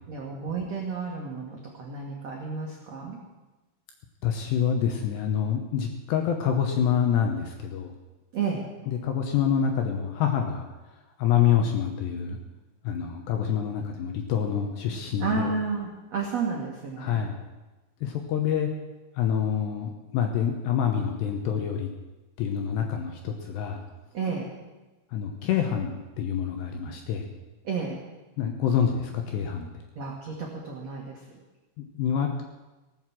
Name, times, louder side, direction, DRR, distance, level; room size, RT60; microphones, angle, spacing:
voice 1, 0.1-3.2 8.3-8.6 15.2-17.2 24.1-24.5 27.6-28.0 29.9-31.3, right 5 dB, 75° right, -2 dB, 1.5 m, -31 dB
voice 2, 4.2-7.9 9.0-10.7 11.2-12.4 12.8-15.5 17.0-17.3 18.0-18.7 19.2-21.9 22.4-23.8 25.1-27.3 28.4-29.7 31.8-32.4, left 8 dB, 75° left, 4 dB, 2.7 m, -26 dB
18.0 x 8.0 x 7.4 m, 1.1 s
omnidirectional pair, 5.9 m